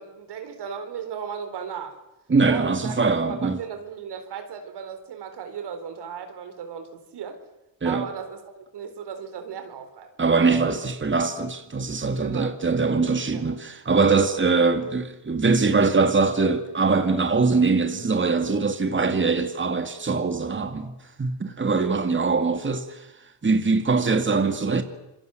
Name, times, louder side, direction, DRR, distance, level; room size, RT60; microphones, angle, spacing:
voice 1, 0.0-2.0 2.4-7.4 7.8-10.3 12.2-12.5 13.3-13.4 21.8-22.1, right 7 dB, 75° right, 4.1 m, -36 dB
voice 2, 2.3-3.6 7.8-8.1 10.2-23.1 23.4-24.8, right 4 dB, 30° right, 2.4 m, -22 dB
26.5 x 22.5 x 7.9 m
supercardioid pair, 65°, 40 cm